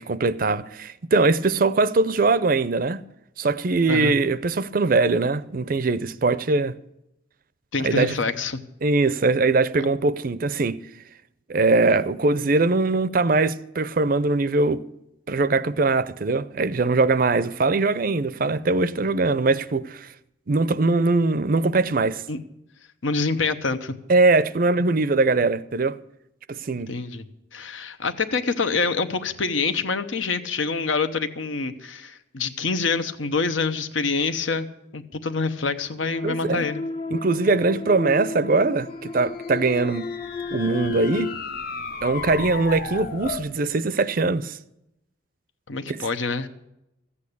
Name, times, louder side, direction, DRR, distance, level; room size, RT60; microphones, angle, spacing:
voice 1, 0.0-3.0 3.4-6.8 7.8-8.1 8.8-10.8 11.5-14.8 15.3-20.1 20.5-22.2 24.1-26.0 26.5-26.9 36.2-36.7 37.1-40.1 40.5-41.4 42.0-44.6 45.9-46.0, right 3 dB, 45° right, 0.5 m, -21 dB
voice 2, 7.7-8.6 22.3-22.4 23.0-23.9 26.9-27.3 27.5-34.7 34.9-36.8 45.7-46.5, left 4 dB, 80° left, 1.0 m, -26 dB
sound 1, 36.0-41.4, left 4 dB, 25° left, 0.6 m, -32 dB
sound 2, 39.1-43.5, left 5 dB, 50° left, 0.9 m, -35 dB
14.5 x 8.5 x 8.5 m
head